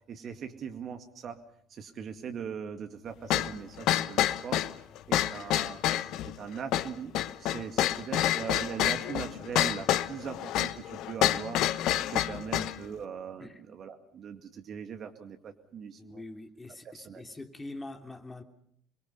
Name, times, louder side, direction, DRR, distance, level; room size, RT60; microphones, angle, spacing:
voice 1, 0.1-1.4 1.7-4.6 5.1-5.8 6.2-7.1 7.4-11.6 12.0-16.2 16.8-17.2, right 7 dB, 45° right, 2.1 m, -40 dB
sound 1, 3.3-12.8, left 12 dB, 60° left, 1.0 m, -28 dB
voice 2, 16.0-18.4, left 2 dB, 20° left, 3.1 m, -44 dB
28.5 x 22.5 x 5.7 m
figure-of-eight pair, 60°, 0 cm